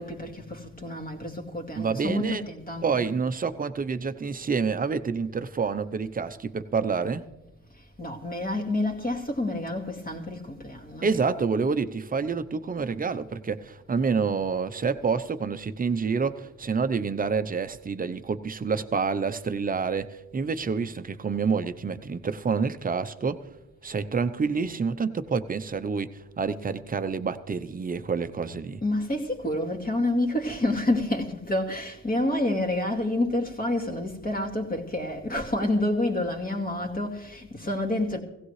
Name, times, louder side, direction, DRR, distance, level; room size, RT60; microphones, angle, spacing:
voice 1, 0.0-3.1 7.7-11.2 28.8-38.2, left 1 dB, 30° left, 2.4 m, -28 dB
voice 2, 1.8-2.4 2.8-7.2 11.0-23.4 23.8-26.1 26.4-28.8, right 5 dB, 30° right, 0.8 m, -28 dB
17.0 x 16.0 x 3.3 m
cardioid pair, 90°, 30 cm